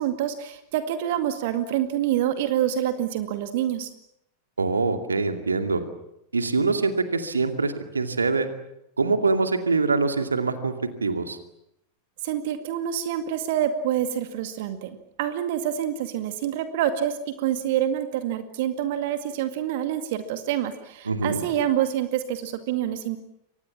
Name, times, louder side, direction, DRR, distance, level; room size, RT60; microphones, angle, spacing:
voice 1, 0.0-3.9 12.2-23.2, right 10 dB, 50° right, 9 dB, 2.1 m, -27 dB
voice 2, 4.6-5.8 6.3-8.5 9.0-10.7 11.0-11.4 21.1-21.4, right 4 dB, 75° right, 7 dB, 2.4 m, -24 dB
29.5 x 24.5 x 7.4 m, 0.81 s
figure-of-eight pair, 90°, 0 cm